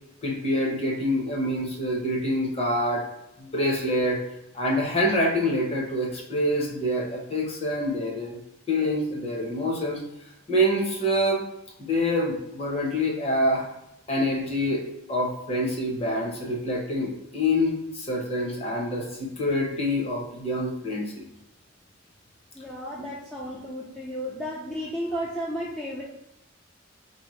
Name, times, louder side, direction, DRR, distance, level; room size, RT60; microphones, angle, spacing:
voice 1, 0.2-3.0 3.4-4.2 4.5-8.4 8.7-10.0 10.5-11.4 11.8-13.7 14.1-21.2, left 1 dB, 30° left, -1 dB, 0.8 m, -26 dB
voice 2, 22.5-26.0, equal, 5° left, -7 dB, 0.5 m, -33 dB
4.1 x 2.8 x 3.1 m, 0.88 s
head